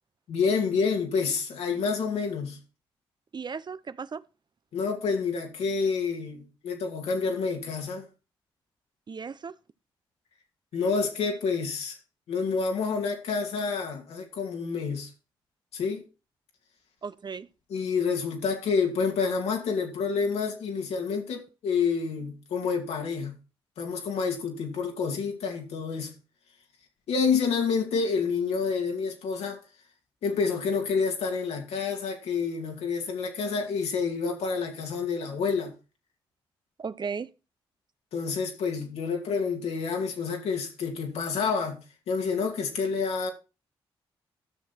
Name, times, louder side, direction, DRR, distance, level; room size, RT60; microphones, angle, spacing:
voice 1, 0.3-2.6 4.7-8.1 10.7-12.0 12.3-15.1 15.7-16.0 17.7-23.3 23.8-26.1 27.1-29.6 30.2-35.7 38.1-41.8 42.1-43.3, left 5 dB, 80° left, 2.4 m, -28 dB
voice 2, 3.3-4.2 9.1-9.6 17.0-17.5 36.8-37.3, right 5 dB, 45° right, 0.7 m, -35 dB
12.5 x 6.6 x 4.4 m
supercardioid pair, 50°, 10 cm